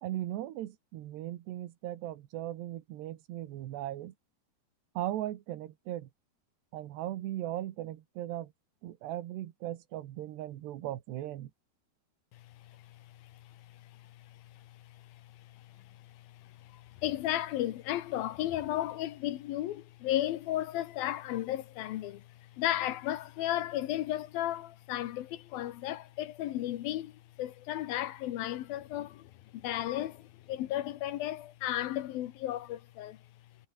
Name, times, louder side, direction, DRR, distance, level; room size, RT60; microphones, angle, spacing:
voice 1, 0.0-4.1 5.0-6.1 6.7-8.5 8.8-11.5, right 13 dB, 90° right, 3.6 m, -38 dB
voice 2, 12.3-33.2, left 13 dB, 70° left, 2.7 m, -35 dB
omnidirectional pair, 4.7 m